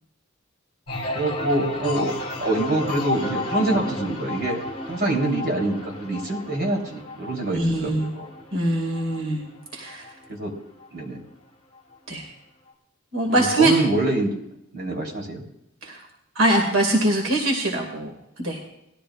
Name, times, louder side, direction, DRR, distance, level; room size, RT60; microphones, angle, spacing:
sound 1, 0.9-10.4 10.8-11.3, left 2 dB, 30° left, 3.7 m, -32 dB
voice 1, 1.1-8.3 10.3-10.5 10.9-11.2 13.3-14.3 14.7-15.5, right 2 dB, 55° right, 0 dB, 3.9 m, -25 dB
voice 2, 7.5-8.1 8.5-9.4 9.7-10.1 12.1-12.3 13.1-13.7 15.8-16.0 16.4-18.1 18.4-18.6, right 1 dB, 85° right, 1 dB, 2.4 m, -22 dB
20.0 x 13.5 x 2.5 m, 0.84 s
head